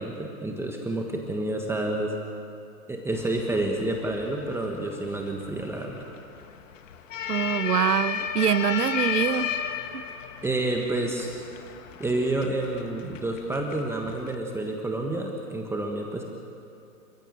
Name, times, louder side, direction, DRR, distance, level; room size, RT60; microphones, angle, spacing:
voice 1, 0.0-2.1 2.9-6.0 10.4-11.3 12.0-16.2, right 2 dB, 5° right, 1 dB, 1.4 m, -29 dB
sound 1, 3.1-14.4, left 8 dB, 55° left, 2.0 m, -34 dB
voice 2, 7.3-9.5 9.9-10.0, right 9 dB, 80° right, 15 dB, 1.1 m, -24 dB
28.5 x 15.5 x 9.1 m, 2.6 s
hypercardioid pair, 135°, 46 cm